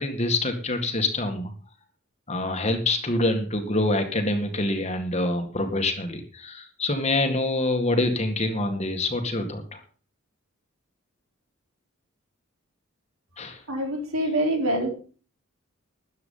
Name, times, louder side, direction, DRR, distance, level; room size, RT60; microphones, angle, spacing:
voice 1, 0.0-1.5 2.3-9.8 13.4-13.6, left 2 dB, 30° left, 5 dB, 2.0 m, -26 dB
voice 2, 13.7-14.9, right 1 dB, 85° right, 3 dB, 4.2 m, -25 dB
13.5 x 9.5 x 5.7 m, 0.40 s
head